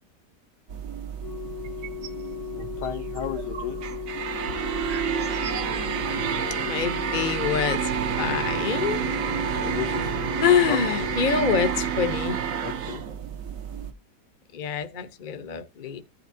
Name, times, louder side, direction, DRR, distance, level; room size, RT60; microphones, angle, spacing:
sound 1, 0.7-13.9, right 7 dB, 60° right, 1.1 m, -29 dB
Organ, 1.2-12.1 13.2-13.4, left 12 dB, 55° left, 1.0 m, -37 dB
sound 2, 1.6-2.2 2.6-6.8 7.0-7.1 7.3-8.3, right 6 dB, 75° right, 1.6 m, -41 dB
voice 1, 2.5-3.8 9.5-10.1 10.6-11.1 12.6-13.0, left 9 dB, 75° left, 1.4 m, -34 dB
voice 2, 6.6-7.8 8.2-9.0 10.4-12.4 14.5-16.0, left 7 dB, 40° left, 0.7 m, -25 dB
14.5 x 5.6 x 2.7 m
omnidirectional pair, 1.8 m